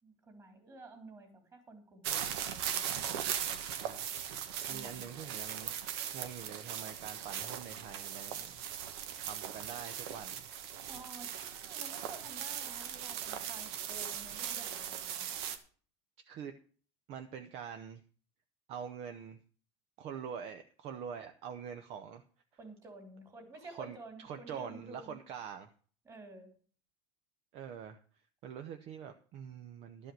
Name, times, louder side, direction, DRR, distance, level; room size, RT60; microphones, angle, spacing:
voice 1, 0.0-3.2 10.9-15.3 22.6-25.2 26.0-26.5, right 2 dB, 25° right, 6 dB, 2.9 m, -52 dB
sound 1, 2.0-15.6, right 9 dB, 75° right, 1.3 m, -39 dB
voice 2, 4.7-8.6 9.2-10.5 16.2-16.5 17.1-18.0 18.7-19.4 20.0-22.2 23.6-25.7 27.5-28.0 28.4-30.1, right 7 dB, 50° right, 7 dB, 0.9 m, -45 dB
11.5 x 5.5 x 7.6 m, 0.42 s
supercardioid pair, 145°, 14 cm